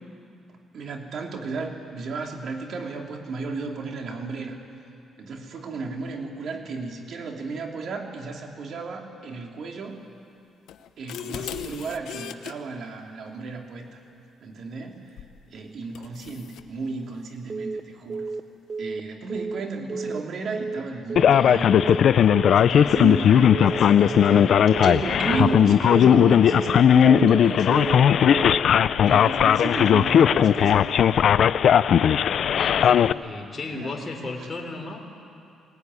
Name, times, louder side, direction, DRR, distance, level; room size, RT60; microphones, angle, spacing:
voice 1, 0.7-4.6 5.2-10.0 11.0-14.0 14.4-15.1 15.5-18.3 18.8-28.3 29.0-30.9 33.7-34.0, right 4 dB, 65° right, 2 dB, 3.0 m, -33 dB
sound 1, 10.7-12.5 15.2-15.4 15.9-16.7, left 10 dB, 85° left, 1.0 m, -37 dB
Telephone, 17.5-17.8 18.1-18.4 18.7-19.0 19.3-19.6 19.9-20.2 20.5-20.8 21.1-21.4 21.7-22.0 22.3-22.6 22.9-23.2 23.5-23.8 24.1-24.4 24.7-25.0 25.3-25.6 25.9-26.2 26.5-26.8 27.1-27.4 27.7-28.0 28.3-28.6, right 4 dB, 25° right, 0.8 m, -31 dB
Male speech man speaking, 21.2-33.1, left 9 dB, 65° left, 0.5 m, -17 dB
voice 2, 32.4-35.0, left 3 dB, 30° left, 0 dB, 3.6 m, -35 dB
21.5 x 19.0 x 9.7 m, 2.6 s
cardioid pair, 90°, 0 cm